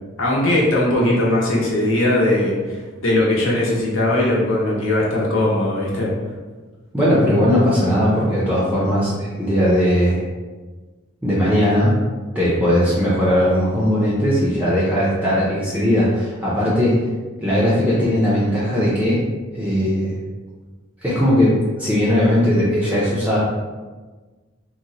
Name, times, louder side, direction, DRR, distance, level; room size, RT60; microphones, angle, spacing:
voice 1, 0.2-6.1, left 1 dB, 70° left, -4 dB, 0.8 m, -19 dB
voice 2, 6.9-10.2 11.2-11.9 12.3-17.0 17.4-19.2 19.5-20.1 21.0-23.4, equal, 10° right, -8 dB, 0.5 m, -18 dB
2.9 x 2.1 x 3.7 m, 1.3 s
head